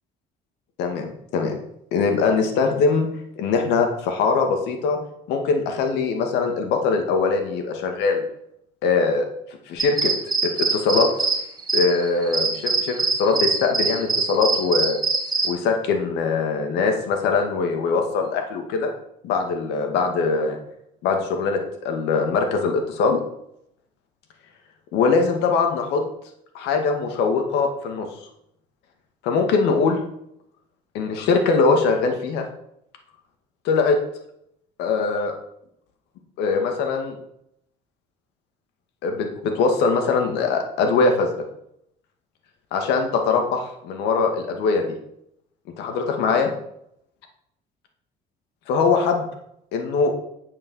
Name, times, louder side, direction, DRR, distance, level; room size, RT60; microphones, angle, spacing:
voice 1, 0.8-1.6 1.9-3.1 3.4-5.0 5.3-8.2 8.8-9.3 9.7-10.1 10.4-11.1 11.7-15.0 15.4-18.9 19.2-20.6 21.0-23.2 24.9-26.0 26.5-28.1 29.2-30.0 30.9-32.5 33.6-34.0 34.8-35.3 36.4-37.2 39.0-41.3 42.7-44.8 45.8-46.5 48.7-49.2 49.7-50.1, left 4 dB, 90° left, 4 dB, 2.2 m, -22 dB
sound 1, 9.8-15.5, right 3 dB, 25° right, 2.3 m, -23 dB
9.6 x 7.4 x 6.5 m, 0.74 s
cardioid pair, 110°, 17 cm